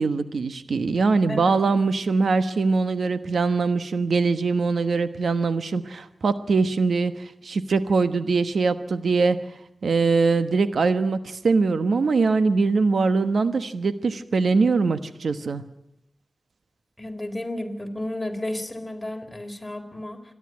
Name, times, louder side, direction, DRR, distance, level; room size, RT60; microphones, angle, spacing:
voice 1, 0.0-7.1 7.4-9.4 9.8-15.6, right 4 dB, 85° right, 11 dB, 1.2 m, -22 dB
voice 2, 17.0-20.2, left 1 dB, 20° left, 4 dB, 3.7 m, -32 dB
27.0 x 11.0 x 9.6 m, 0.85 s
cardioid pair, 45°, 0 cm